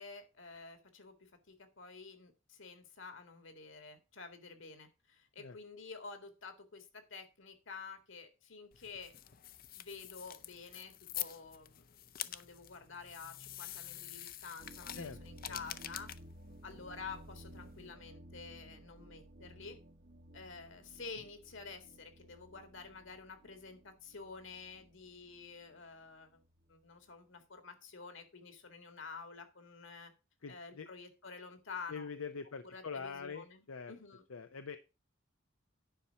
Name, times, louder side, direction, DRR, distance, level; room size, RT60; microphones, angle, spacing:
voice 1, 0.0-9.1 9.8-16.1 16.6-19.8 20.3-26.4 26.7-30.1 30.5-32.1 32.6-34.2, left 4 dB, 65° left, 8 dB, 2.1 m, -50 dB
sound 1, 8.7-17.9, left 12 dB, 45° left, 0.6 m, -47 dB
sound 2, 14.6-27.0, right 1 dB, 45° right, 0.9 m, -56 dB
voice 2, 30.4-30.9 31.9-34.0 34.3-34.8, left 5 dB, 85° left, 9 dB, 0.7 m, -44 dB
10.0 x 5.6 x 5.7 m, 0.29 s
head